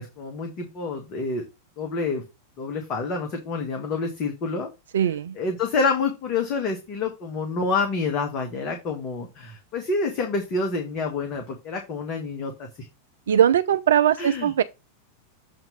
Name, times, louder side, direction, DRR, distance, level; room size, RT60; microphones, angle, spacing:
voice 1, 0.0-1.4 1.8-2.2 2.6-4.7 5.3-12.9 14.2-14.5, left 4 dB, 35° left, 1.3 m, -28 dB
voice 2, 4.9-5.4 13.3-14.6, right 9 dB, 65° right, 0.4 m, -20 dB
7.3 x 3.0 x 5.0 m
figure-of-eight pair, 90°, 0 cm